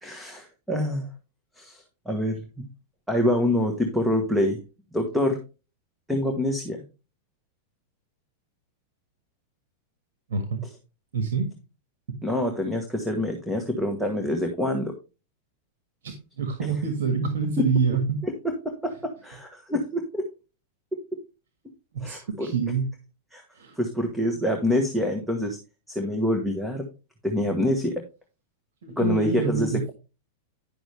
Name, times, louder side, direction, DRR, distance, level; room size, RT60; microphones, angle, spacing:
voice 1, 0.0-1.1 1.6-2.4 3.1-4.6 4.9-5.4 6.1-6.8 12.2-14.9 18.2-20.2 22.0-22.5 23.3-23.4 23.8-25.6 25.9-26.9 27.2-27.9 29.0-29.9, left 1 dB, ahead, 3 dB, 1.3 m, -26 dB
voice 2, 10.3-10.7 11.1-11.5 12.1-12.2 16.0-18.2 21.9-22.9 23.5-23.8 28.8-29.9, right 5 dB, 85° right, 6 dB, 1.7 m, -27 dB
10.5 x 6.1 x 3.4 m, 0.31 s
supercardioid pair, 145°, 0 cm